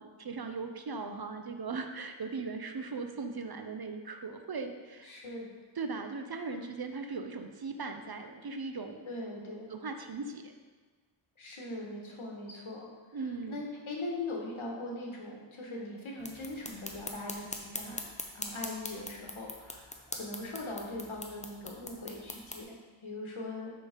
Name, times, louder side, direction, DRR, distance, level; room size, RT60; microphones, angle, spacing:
voice 1, 0.0-5.2 5.8-9.1 9.7-10.5 13.1-13.7, right 4 dB, 50° right, 6 dB, 0.6 m, -39 dB
voice 2, 5.0-5.5 9.1-9.7 11.4-12.9 13.5-18.0 18.3-23.7, left 2 dB, 75° left, -1 dB, 1.3 m, -40 dB
sound 1, 16.2-22.6, left 2 dB, 15° left, 0.6 m, -42 dB
6.2 x 3.8 x 5.0 m, 1.4 s
wide cardioid pair, 80°, 49 cm